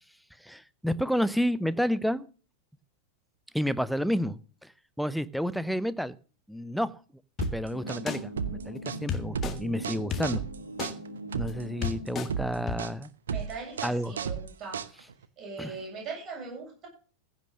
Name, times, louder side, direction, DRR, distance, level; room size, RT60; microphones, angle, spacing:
voice 1, 0.4-2.3 3.5-4.7 5.0-6.1 6.5-6.9 7.5-10.4 11.3-13.1 13.8-14.1 15.6-15.7, equal, ahead, 0.7 m, -30 dB
sound 1, 7.4-7.5 8.1-8.2 9.1-9.5 10.1-10.2 10.8-10.9 11.5-11.6 11.8-12.3 12.7-12.8, left 7 dB, 25° left, 1.8 m, -31 dB
sound 2, 7.4-15.2, right 7 dB, 65° right, 0.9 m, -34 dB
sound 3, 7.7-12.9, right 1 dB, 90° right, 1.9 m, -41 dB
voice 2, 13.3-14.9 15.4-16.9, right 4 dB, 35° right, 7.4 m, -40 dB
15.5 x 6.1 x 6.6 m
figure-of-eight pair, 90°, 0 cm